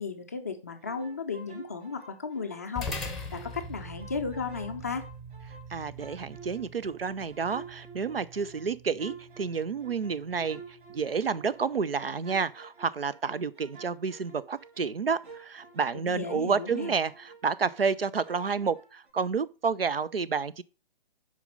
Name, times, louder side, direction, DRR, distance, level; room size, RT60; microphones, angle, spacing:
voice 1, 0.0-2.9 3.3-5.1 15.9-17.0, left 5 dB, 15° left, 0.4 m, -35 dB
sound 1, 0.8-2.7 3.0-5.7 6.0-11.8 12.2-18.0 18.2-19.1, right 4 dB, 55° right, 2.6 m, -50 dB
sound 2, 2.8-11.4, left 1 dB, ahead, 0.8 m, -43 dB
voice 2, 5.7-10.6 10.9-20.6, right 5 dB, 75° right, 0.6 m, -30 dB
8.2 x 5.2 x 5.4 m
figure-of-eight pair, 135°, 30 cm